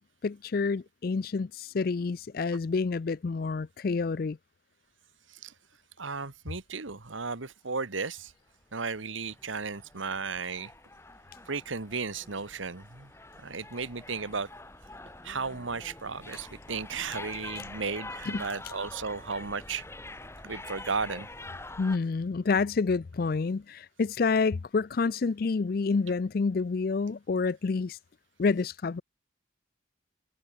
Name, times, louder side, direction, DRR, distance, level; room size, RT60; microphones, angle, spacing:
voice 1, 0.2-4.4 18.3-18.4 21.8-28.0 28.4-29.0, left 4 dB, 50° left, 0.4 m, -28 dB
voice 2, 6.0-8.3 8.7-10.7 11.5-13.1 13.4-14.5 15.2-19.8 20.4-21.3, right 4 dB, 80° right, 1.7 m, -35 dB
sound 1, 8.8-22.0, left 2 dB, 15° left, 3.9 m, -45 dB
head